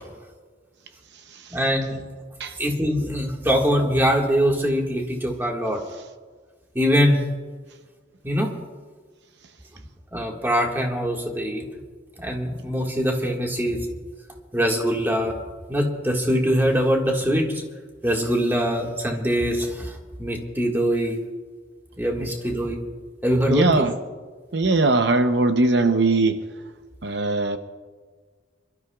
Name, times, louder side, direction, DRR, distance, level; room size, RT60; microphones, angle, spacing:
voice 1, 1.5-2.0 2.6-5.8 6.8-7.3 8.2-8.6 10.1-11.6 12.2-13.9 14.5-15.3 15.7-17.5 18.0-21.2 22.0-22.8 23.2-23.9, equal, 10° right, 1.7 m, -23 dB
voice 2, 23.5-23.9 24.5-26.5 27.0-27.6, right 3 dB, 70° right, 0.8 m, -20 dB
27.5 x 13.0 x 2.4 m
head